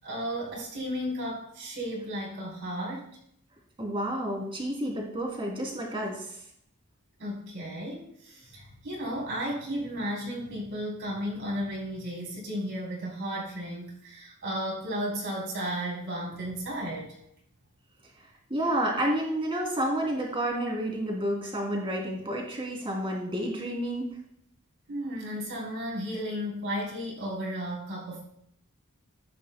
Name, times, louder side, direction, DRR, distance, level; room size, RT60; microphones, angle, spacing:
voice 1, 0.0-3.1 7.2-17.2 24.9-28.2, equal, 60° right, -4 dB, 3.8 m, -34 dB
voice 2, 3.8-6.3 18.2-24.1, right 1 dB, 25° right, -1 dB, 2.9 m, -30 dB
14.0 x 10.0 x 2.2 m, 0.69 s
head